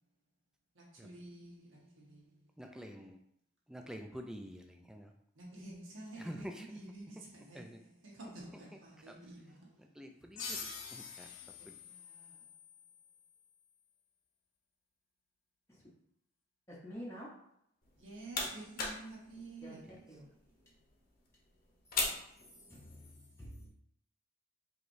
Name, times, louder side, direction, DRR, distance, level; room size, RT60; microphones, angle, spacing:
voice 1, 0.7-2.5 5.3-10.0 11.2-12.5 18.0-20.8, right 2 dB, 70° right, 1.2 m, -51 dB
voice 2, 2.6-3.2 3.7-5.1 6.2-6.7 7.6-7.8 10.0-11.3, equal, 5° right, 0.3 m, -47 dB
sound 1, 10.4-13.6, left 5 dB, 75° left, 0.8 m, -46 dB
voice 3, 16.7-17.4 19.6-20.3 22.7-23.7, equal, 15° left, 0.7 m, -48 dB
sound 2, 17.8-23.1, left 3 dB, 45° left, 0.8 m, -41 dB
4.8 x 3.0 x 2.6 m
head